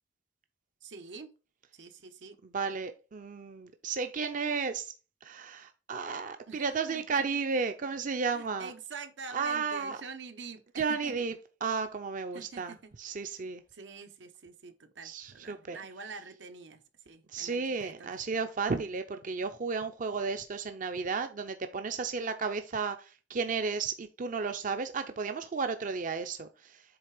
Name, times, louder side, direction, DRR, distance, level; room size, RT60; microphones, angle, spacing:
voice 1, 0.8-1.3 1.7-2.4 6.5-7.0 8.3-11.1 12.3-12.9 13.4-16.8 17.0-18.1, right 4 dB, 85° right, 0.8 m, -46 dB
voice 2, 2.5-4.9 5.2-8.7 9.3-10.0 10.8-11.3 11.6-13.6 15.0-15.8 17.3-26.8, right 5 dB, 45° right, 0.5 m, -33 dB
7.9 x 3.3 x 4.8 m
head